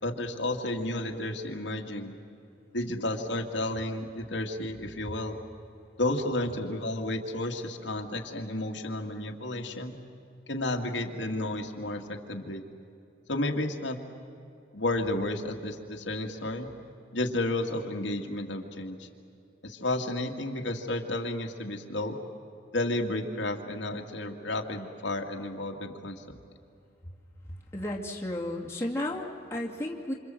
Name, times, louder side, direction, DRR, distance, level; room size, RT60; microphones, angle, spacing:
voice 1, 0.0-2.1 2.7-5.4 6.0-9.9 10.5-12.6 13.3-14.0 14.7-16.7 17.1-19.1 19.6-22.2 22.7-26.4, left 1 dB, 70° left, 2 dB, 2.1 m, -32 dB
voice 2, 27.7-30.1, left 1 dB, 15° left, -2 dB, 2.3 m, -33 dB
27.5 x 27.0 x 7.7 m, 2.6 s
head